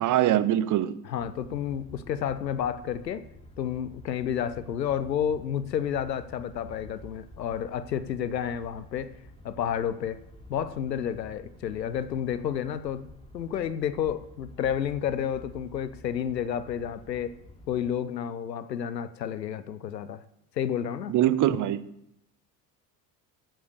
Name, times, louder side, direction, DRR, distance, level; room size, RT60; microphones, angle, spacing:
voice 1, 0.0-1.0 21.1-21.8, right 12 dB, 40° right, 0.7 m, -23 dB
voice 2, 1.1-3.3 3.6-9.2 9.4-10.2 10.5-13.1 13.3-17.4 17.7-20.2 20.6-21.1, left 9 dB, 90° left, 0.7 m, -30 dB
sound 1, 1.2-17.9, left 1 dB, 10° left, 3.0 m, -50 dB
9.3 x 7.6 x 6.7 m
figure-of-eight pair, 60°, 49 cm